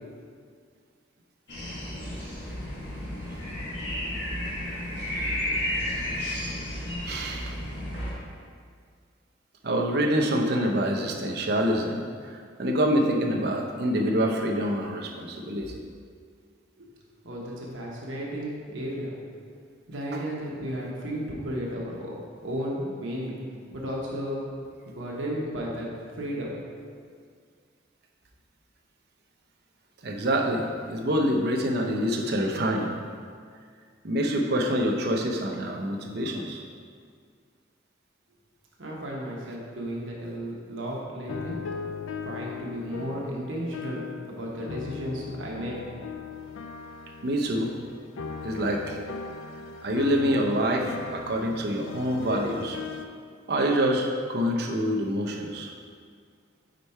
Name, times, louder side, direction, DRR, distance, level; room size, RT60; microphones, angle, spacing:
sound 1, 1.5-8.1, left 1 dB, 55° left, 1.5 m, -32 dB
voice 1, 6.1-6.6 7.1-7.6 9.6-15.8 20.1-20.2 30.0-32.9 34.0-36.6 47.2-47.7 48.4-49.0 49.8-52.8 53.5-55.7, equal, 55° right, 1 dB, 0.6 m, -26 dB
voice 2, 17.2-19.1 19.9-22.2 22.4-23.4 23.7-24.5 24.8-25.9 26.1-26.6 38.8-41.6 42.2-45.8, equal, 85° right, -3 dB, 1.0 m, -34 dB
sound 2, 41.3-44.3 44.6-53.0, left 5 dB, 85° left, 0.4 m, -38 dB
5.1 x 4.5 x 4.2 m, 2.1 s
head